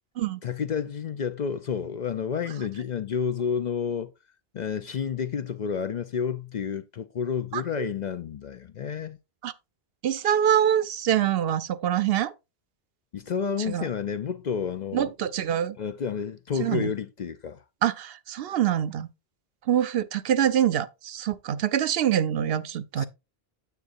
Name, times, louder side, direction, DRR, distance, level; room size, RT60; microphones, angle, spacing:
voice 1, 0.4-4.1 4.5-9.2 13.1-15.1 15.8-17.6 23.0-23.1, left 7 dB, 55° left, 0.6 m, -30 dB
voice 2, 7.5-7.9 9.4-9.5 10.0-12.3 13.7-13.9 14.9-15.8 16.6-16.8 17.8-19.1 19.7-23.1, right 10 dB, 70° right, 0.8 m, -25 dB
9.3 x 7.9 x 2.6 m
omnidirectional pair, 1.1 m